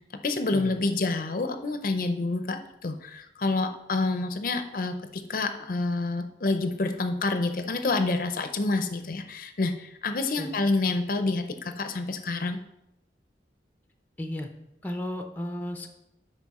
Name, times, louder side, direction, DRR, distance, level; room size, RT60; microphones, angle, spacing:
voice 1, 0.2-12.6, left 3 dB, 50° left, 8 dB, 0.5 m, -28 dB
voice 2, 14.2-14.5 14.8-15.9, left 1 dB, 10° left, 5 dB, 0.6 m, -34 dB
8.3 x 5.4 x 4.1 m, 0.86 s
head